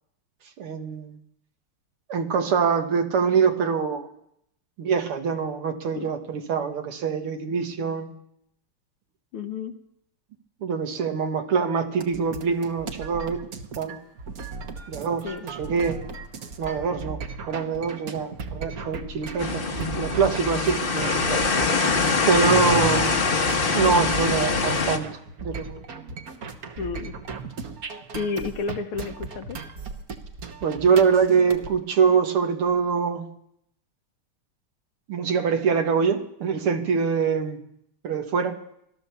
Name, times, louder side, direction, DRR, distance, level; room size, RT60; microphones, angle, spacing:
voice 1, 0.6-1.2 2.1-4.1 4.8-8.1 10.6-13.4 13.8-14.0 14.9-16.0 16.6-21.4 22.3-23.1 23.7-25.1 25.4-25.8 30.6-33.3 35.1-37.6 38.0-38.6, right 6 dB, 80° right, 6 dB, 2.3 m, -24 dB
voice 2, 9.3-9.8 15.2-15.5 22.5-22.9 26.8-27.1 28.1-29.6, left 5 dB, 85° left, 7 dB, 2.0 m, -31 dB
sound 1, 12.0-31.7, right 5 dB, 50° right, 1.4 m, -37 dB
sound 2, 19.4-25.0, left 4 dB, 35° left, 0.9 m, -23 dB
16.5 x 12.0 x 6.9 m, 0.76 s
omnidirectional pair, 2.4 m